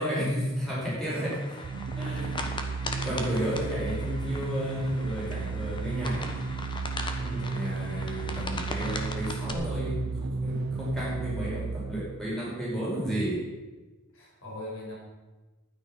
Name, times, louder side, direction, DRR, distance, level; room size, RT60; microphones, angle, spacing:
voice 1, 0.0-1.4 2.0-2.5 3.0-6.3 7.4-13.5, equal, ahead, -7 dB, 5.2 m, -32 dB
sound 1, 1.2-9.5, left 2 dB, 25° left, 1.2 m, -39 dB
sound 2, 1.6-12.4, right 4 dB, 60° right, 0.4 m, -33 dB
voice 2, 2.1-2.6 7.1-7.6 14.1-15.0, left 1 dB, 85° left, -3 dB, 5.1 m, -39 dB
12.0 x 9.4 x 5.9 m, 1.2 s
head